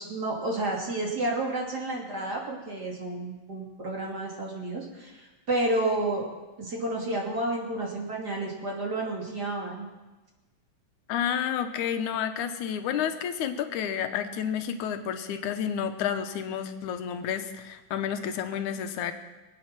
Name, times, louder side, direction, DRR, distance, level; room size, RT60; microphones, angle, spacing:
voice 1, 0.0-6.3 6.6-9.9, right 2 dB, 35° right, -2 dB, 3.0 m, -30 dB
voice 2, 11.1-19.1, left 8 dB, 85° left, 7 dB, 2.4 m, -30 dB
24.0 x 9.0 x 6.0 m, 1.2 s
omnidirectional pair, 3.4 m